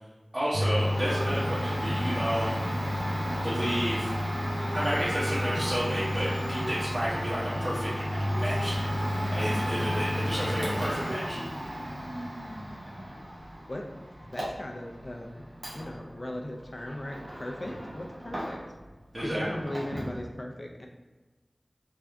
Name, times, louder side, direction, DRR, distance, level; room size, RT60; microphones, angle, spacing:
voice 1, 0.3-2.7 3.4-4.1 4.7-7.9 8.3-8.8 9.3-11.4 19.1-19.6, equal, 45° right, -10 dB, 1.0 m, -31 dB
Domestic sounds home sounds, 0.5-18.9 19.1-20.2, equal, 85° right, 0.9 m, -32 dB
voice 2, 13.7-15.4 15.7-18.6 19.2-20.9, left 1 dB, 45° left, 1 dB, 0.4 m, -38 dB
3.4 x 2.6 x 3.3 m, 1.2 s
wide cardioid pair, 40°, 0 cm